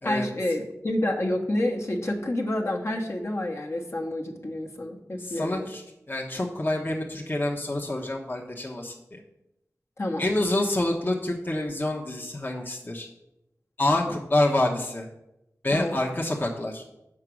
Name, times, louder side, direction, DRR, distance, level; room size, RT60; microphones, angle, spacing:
voice 1, 0.0-5.7 10.0-10.2 13.9-14.1 15.7-16.0, left 1 dB, 50° left, 0 dB, 1.3 m, -29 dB
voice 2, 5.2-5.8 6.1-9.2 10.2-13.1 13.8-15.1 15.6-16.8, left 1 dB, 35° left, -2 dB, 1.1 m, -27 dB
7.5 x 6.1 x 6.2 m, 0.89 s
wide cardioid pair, 55°, 6 cm